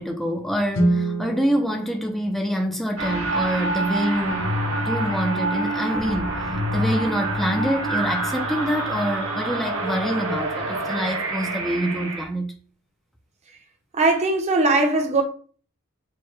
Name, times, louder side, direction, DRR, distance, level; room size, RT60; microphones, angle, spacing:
voice 1, 0.0-4.5 4.8-6.3 6.7-12.5, equal, ahead, 0.3 m, -26 dB
Guitar, 0.7-3.3, right 2 dB, 60° left, 0.8 m, -27 dB
sound 1, 3.0-12.3, right 1 dB, 65° right, 1.1 m, -27 dB
voice 2, 13.9-15.2, right 2 dB, 30° right, 0.7 m, -19 dB
4.5 x 2.1 x 3.0 m
head